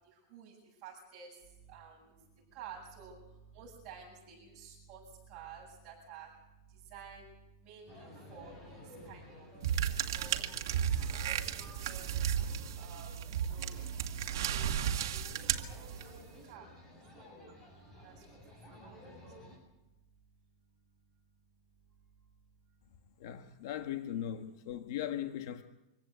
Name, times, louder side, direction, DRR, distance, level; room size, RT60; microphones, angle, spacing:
voice 1, 0.8-1.3 1.7-2.0 2.5-3.2 3.5-5.0 5.3-6.3 6.9-7.3 7.6-9.5 9.9-10.4 11.0-11.5 11.8-12.1 12.8-13.1 13.5-13.7 14.4-14.8 15.1-15.9 16.5-16.7 17.2-17.3 18.0-18.4 18.8-19.0, right 6 dB, 30° right, 7.8 m, -51 dB
sound 1, 7.9-19.6, equal, 15° left, 7.9 m, -53 dB
sound 2, 9.6-16.3, right 9 dB, 70° right, 1.9 m, -34 dB
voice 2, 23.2-25.6, left 11 dB, 55° left, 1.4 m, -38 dB
26.0 x 16.0 x 8.0 m
supercardioid pair, 170°, 2 cm